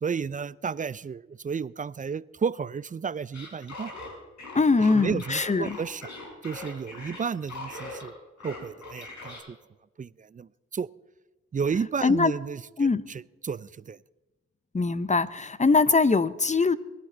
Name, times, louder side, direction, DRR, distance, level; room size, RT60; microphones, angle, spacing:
voice 1, 0.0-3.9 4.8-6.1 6.4-8.1 8.4-9.6 10.0-10.9 11.5-14.0, right 6 dB, 25° right, 21 dB, 0.4 m, -32 dB
sound 1, 3.3-8.1 8.4-9.4, left 2 dB, 65° left, 5.1 m, -41 dB
voice 2, 4.5-5.8 12.0-12.3 12.8-13.0 14.7-16.8, left 4 dB, 25° left, 16 dB, 0.8 m, -22 dB
22.5 x 11.0 x 3.9 m, 1.2 s
cardioid pair, 55°, 31 cm